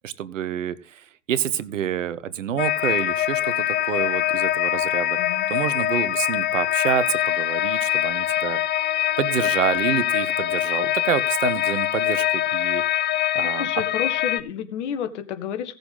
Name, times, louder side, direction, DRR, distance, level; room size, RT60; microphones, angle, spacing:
voice 1, 0.0-5.2 5.5-8.6 9.2-12.8 13.3-13.7, right 9 dB, 80° right, 16 dB, 1.1 m, -27 dB
sound 1, 2.6-14.4, left 13 dB, 30° left, 0.8 m, -23 dB
voice 2, 13.4-15.8, left 8 dB, 65° left, 10 dB, 1.8 m, -30 dB
17.5 x 6.9 x 3.9 m, 0.35 s
hypercardioid pair, 95°, 37 cm